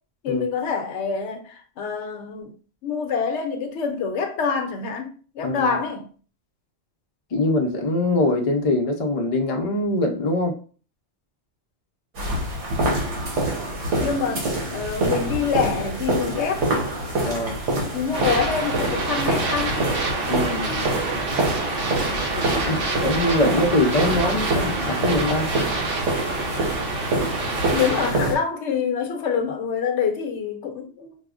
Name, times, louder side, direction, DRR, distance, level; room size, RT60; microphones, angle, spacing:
voice 1, 0.2-2.5 2.8-6.1 13.9-16.8 17.9-19.8 27.7-31.2, left 6 dB, 75° left, 0.9 m, -26 dB
voice 2, 7.3-10.5 17.2-17.6 20.3-20.9 22.4-25.5 27.2-27.3, left 2 dB, 45° left, 0.5 m, -23 dB
footsteps cellar, 12.1-28.3, right 2 dB, 80° right, 1.4 m, -26 dB
sound 1, 18.1-28.1, right 2 dB, 60° right, 0.8 m, -27 dB
4.6 x 2.1 x 2.4 m
omnidirectional pair, 1.2 m